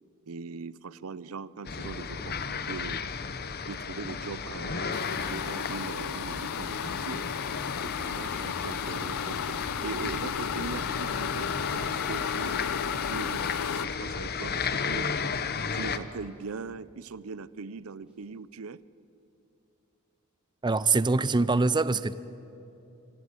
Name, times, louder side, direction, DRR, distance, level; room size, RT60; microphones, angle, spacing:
voice 1, 0.3-3.0 3.7-7.2 7.8-12.6 13.0-15.2 15.7-18.8, right 4 dB, 75° right, 18 dB, 0.6 m, -40 dB
sound 1, 1.6-16.0, left 5 dB, 45° left, 1.0 m, -34 dB
sound 2, 1.8-2.6 4.1-4.5 6.2-6.8 8.7-10.0 11.8-12.9 14.2-14.6 16.2-16.4 18.0-18.3, equal, 5° right, 6.1 m, -53 dB
sound 3, 4.9-13.9, left 8 dB, 70° left, 0.5 m, -34 dB
voice 2, 20.6-22.1, right 3 dB, 20° right, 15 dB, 0.5 m, -24 dB
25.5 x 16.0 x 9.7 m, 2.8 s
head